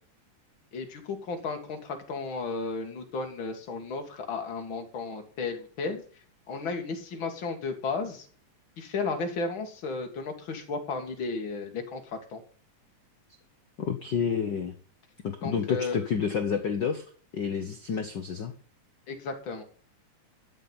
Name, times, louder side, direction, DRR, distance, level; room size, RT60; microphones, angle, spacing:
voice 1, 0.7-6.0 6.5-8.3 8.8-12.4 15.4-15.9 19.1-19.6, left 4 dB, 40° left, 4 dB, 2.6 m, -34 dB
voice 2, 13.8-14.7 15.2-17.0 17.3-18.5, left 6 dB, 75° left, 7 dB, 1.0 m, -29 dB
12.5 x 7.7 x 5.6 m, 0.43 s
omnidirectional pair, 3.6 m